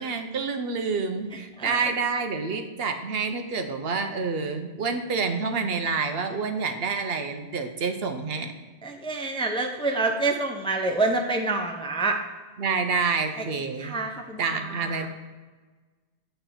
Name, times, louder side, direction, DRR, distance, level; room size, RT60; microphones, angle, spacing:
voice 1, 0.0-8.5 12.6-14.0 14.4-15.1, right 4 dB, 70° right, 6 dB, 0.9 m, -28 dB
voice 2, 8.8-12.2 13.8-15.1, right 3 dB, 5° left, 3 dB, 0.5 m, -27 dB
9.1 x 3.4 x 5.6 m, 1.3 s
omnidirectional pair, 1.1 m